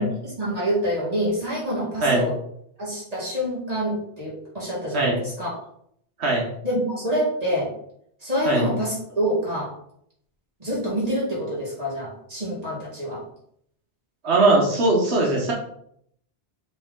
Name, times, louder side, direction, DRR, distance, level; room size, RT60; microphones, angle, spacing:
voice 1, 0.0-2.4 2.8-5.6 6.6-7.7 8.2-9.7 10.6-13.2, equal, 35° right, -5 dB, 2.5 m, -27 dB
voice 2, 14.2-15.5, right 2 dB, 90° right, -1 dB, 1.5 m, -20 dB
6.8 x 3.8 x 3.7 m, 0.70 s
omnidirectional pair, 1.1 m